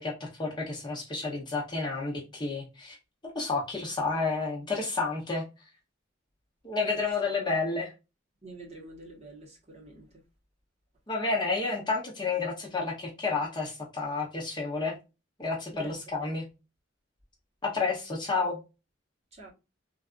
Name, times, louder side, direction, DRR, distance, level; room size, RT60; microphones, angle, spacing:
voice 1, 0.0-3.0 3.3-5.4 6.6-7.9 11.1-15.0 15.4-16.4 17.6-18.6, left 3 dB, 25° left, 0.8 m, -30 dB
voice 2, 8.4-10.1 15.7-15.9 16.2-16.3 19.3-19.5, right 2 dB, 35° right, 1.2 m, -46 dB
3.3 x 2.5 x 2.4 m
head